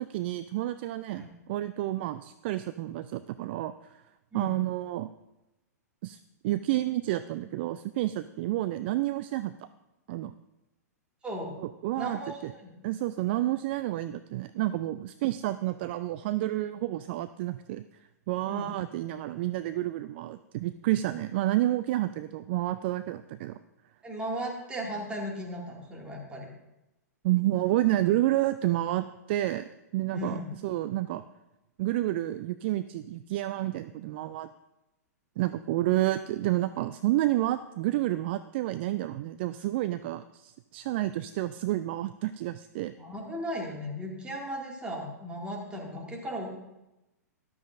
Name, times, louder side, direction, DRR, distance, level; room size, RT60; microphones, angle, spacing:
voice 1, 0.0-3.7 4.3-5.1 6.0-6.2 6.4-9.5 10.1-10.3 11.6-12.5 12.8-17.9 18.3-23.6 27.2-29.7 29.9-31.2 31.8-34.5 35.4-42.9, right 15 dB, 40° right, 13 dB, 0.3 m, -30 dB
voice 2, 11.9-12.8 18.5-18.7 24.0-26.5 30.1-30.5 43.0-46.5, equal, 10° right, -1 dB, 2.1 m, -36 dB
13.5 x 11.5 x 2.5 m, 0.95 s
figure-of-eight pair, 110°, 9 cm